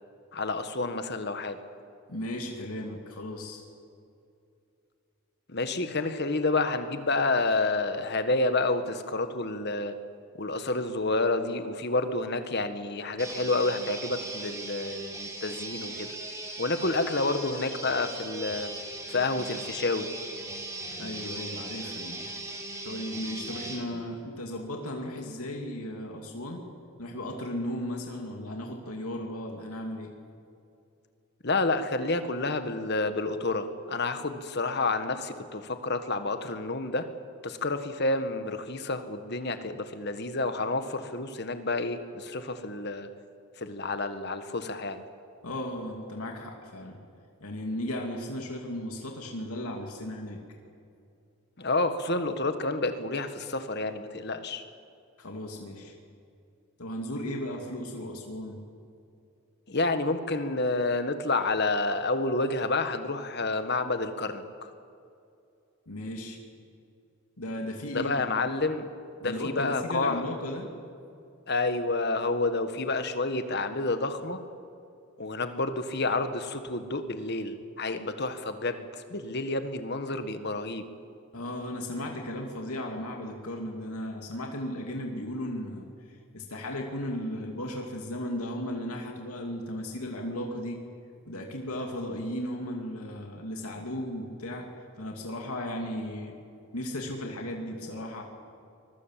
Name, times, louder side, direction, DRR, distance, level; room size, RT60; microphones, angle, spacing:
voice 1, 0.3-1.6 5.5-9.9 10.4-16.1 16.6-18.7 19.1-20.1 31.4-37.0 37.4-43.1 43.6-45.0 51.6-54.6 59.7-64.7 67.9-68.9 69.2-70.2 71.5-74.4 75.2-80.8, left 2 dB, 50° left, 9 dB, 1.5 m, -29 dB
voice 2, 2.1-3.6 21.0-22.2 22.8-26.6 27.0-30.1 45.4-47.0 47.4-50.4 55.2-55.9 56.8-58.6 65.9-66.4 67.4-68.4 69.2-70.7 81.3-90.8 91.2-94.7 95.0-96.4 96.7-98.2, left 1 dB, 90° left, 2 dB, 2.6 m, -35 dB
sound 1, 13.2-23.9, right 2 dB, 15° right, 3.4 m, -38 dB
24.5 x 22.0 x 7.5 m, 2.5 s
head